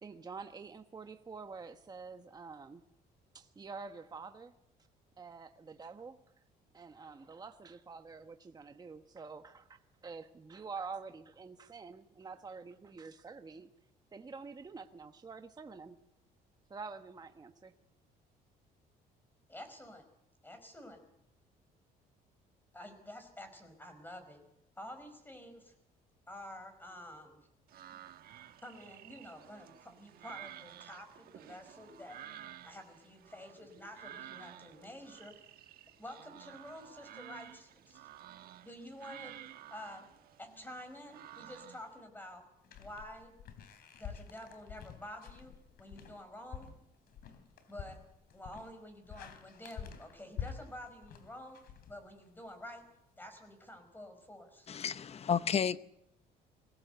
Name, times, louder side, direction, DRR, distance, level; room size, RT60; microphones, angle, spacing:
voice 1, 0.0-2.8 3.3-4.6 5.2-6.2 6.7-13.7 14.1-16.0 16.7-17.7, right 4 dB, 25° right, 7 dB, 1.2 m, -47 dB
voice 2, 19.5-20.0 20.4-21.0 22.7-24.4 24.8-25.7 26.3-27.5 28.6-32.2 32.6-35.5 36.0-38.0 38.6-39.3 39.7-40.1 40.4-42.4 42.8-43.3 44.0-46.7 47.7-48.0 48.3-51.6 51.9-52.9 53.2-54.7, left 1 dB, 10° left, 8 dB, 5.2 m, -49 dB
sound 1, 27.7-42.0, right 11 dB, 65° right, 1.2 m, -53 dB
sound 2, 42.6-52.5, left 8 dB, 65° left, 3.5 m, -48 dB
voice 3, 54.7-55.8, left 7 dB, 40° left, 15 dB, 0.8 m, -31 dB
22.5 x 17.5 x 8.0 m, 0.82 s
cardioid pair, 110°, 17 cm